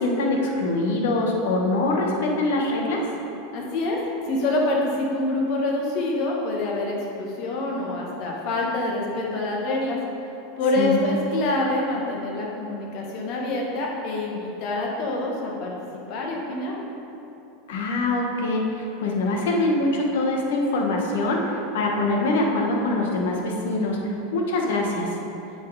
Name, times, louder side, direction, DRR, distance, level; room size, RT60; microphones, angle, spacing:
voice 1, 0.0-3.1 10.8-11.1 17.7-24.0 24.3-25.1, left 2 dB, 75° left, 0 dB, 1.2 m, -24 dB
voice 2, 3.5-4.0 4.2-10.0 10.6-16.7, left 2 dB, 55° left, -2 dB, 1.5 m, -26 dB
8.2 x 4.3 x 4.8 m, 3.0 s
hypercardioid pair, 110°, 0 cm